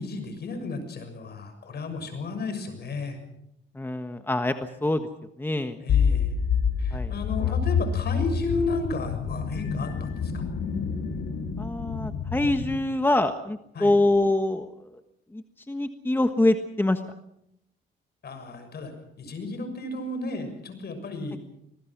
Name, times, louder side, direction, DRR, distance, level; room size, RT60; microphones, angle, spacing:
voice 1, 0.0-3.2 5.8-6.3 6.8-10.4 13.7-14.0 18.2-18.9 19.2-21.4, left 3 dB, 55° left, 8 dB, 6.6 m, -33 dB
voice 2, 3.7-4.5 4.8-5.0 5.4-5.8 6.9-7.1 7.4-7.5 11.6-14.7 15.3-17.0, left 1 dB, 10° left, 7 dB, 1.4 m, -25 dB
sound 1, 5.9-12.8, left 6 dB, 75° left, 3.2 m, -27 dB
26.0 x 20.0 x 6.1 m, 0.78 s
cardioid pair, 90°, 20 cm